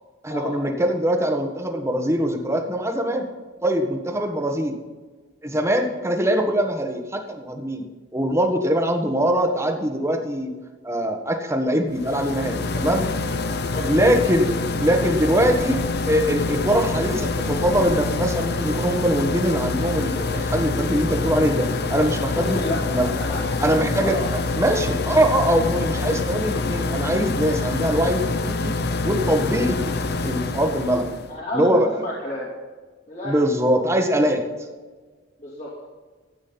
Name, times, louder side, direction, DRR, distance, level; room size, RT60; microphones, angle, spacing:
voice 1, 0.2-3.3 3.6-4.8 5.4-7.8 8.1-10.5 10.8-13.1 13.8-14.5 14.8-22.6 22.8-23.1 23.6-24.2 24.6-28.7 29.0-30.0 30.2-31.1 31.5-31.9 33.2-34.4, equal, 15° right, 4 dB, 1.4 m, -22 dB
sound 1, 11.9-31.3, left 3 dB, 55° left, 0.8 m, -26 dB
voice 2, 22.3-22.8 23.1-23.6 24.0-24.3 31.3-32.5 33.1-33.4 35.4-35.7, left 1 dB, 40° left, -5 dB, 2.7 m, -31 dB
14.5 x 8.8 x 5.6 m, 1.4 s
head